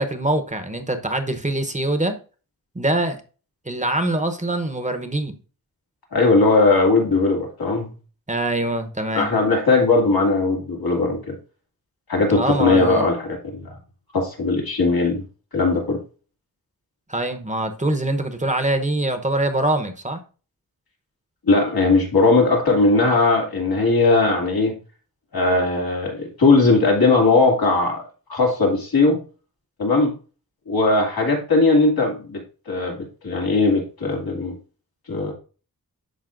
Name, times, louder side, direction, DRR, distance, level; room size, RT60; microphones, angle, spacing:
voice 1, 0.0-2.2 2.7-3.2 3.7-5.4 8.3-9.3 12.3-13.1 17.1-20.2, right 1 dB, 20° right, 0.9 m, -23 dB
voice 2, 6.1-7.9 9.1-11.3 12.1-13.7 14.1-15.2 15.5-16.0 21.4-24.8 25.3-28.0 28.3-29.2 29.8-30.1 30.7-32.4 32.7-33.0 33.2-34.5 35.1-35.3, left 3 dB, 80° left, 2.1 m, -18 dB
11.5 x 4.3 x 2.6 m
wide cardioid pair, 70°, 36 cm